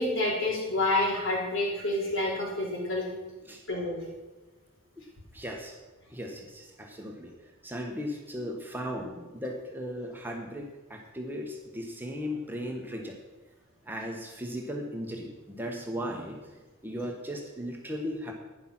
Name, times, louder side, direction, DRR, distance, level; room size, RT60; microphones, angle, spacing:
voice 1, 0.0-3.1 3.7-4.0, left 2 dB, 60° left, -3 dB, 4.6 m, -28 dB
voice 2, 5.3-5.8 6.1-7.3 7.6-13.2 13.8-16.4 16.8-18.3, equal, 10° right, 1 dB, 1.2 m, -37 dB
11.5 x 9.8 x 5.9 m, 1.2 s
head